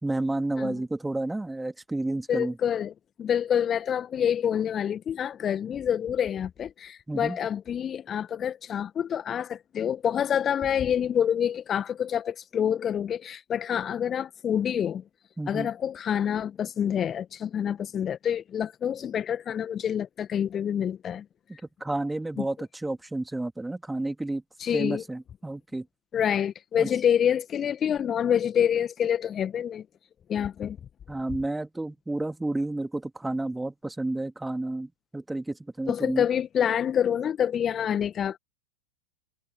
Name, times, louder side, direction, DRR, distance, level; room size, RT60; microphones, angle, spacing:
voice 1, 0.0-2.6 7.1-7.4 15.4-15.7 21.8-24.4 24.7-25.8 26.8-26.9 31.1-36.3, right 2 dB, 5° right, 3.0 m, -31 dB
voice 2, 2.3-2.9 3.2-15.0 15.5-21.3 22.4-22.5 24.6-25.0 26.1-29.9 30.3-30.8 35.9-38.4, left 9 dB, 25° left, 1.7 m, -27 dB
figure-of-eight pair, 90°, 0 cm